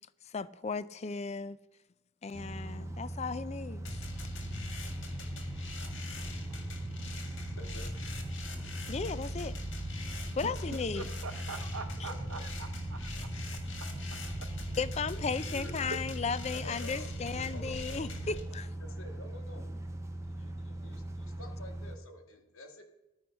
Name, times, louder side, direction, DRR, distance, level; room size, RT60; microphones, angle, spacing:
voice 1, 0.2-1.6 2.2-3.9 8.9-9.6 10.4-11.1 12.0-12.1 14.8-18.7, left 5 dB, 30° left, 0.4 m, -35 dB
sound 1, 2.3-22.0, right 1 dB, 15° right, 1.1 m, -40 dB
sound 2, 3.8-18.4, left 1 dB, 55° left, 1.9 m, -42 dB
voice 2, 7.5-7.9 10.2-10.8 12.1-12.5 15.2-15.3 15.5-15.7 16.5-18.6 18.8-19.6 20.2-22.8, left 1 dB, 75° left, 1.8 m, -49 dB
voice 3, 10.7-13.1 13.8-14.2, right 4 dB, 75° right, 0.7 m, -44 dB
11.0 x 9.4 x 5.7 m
head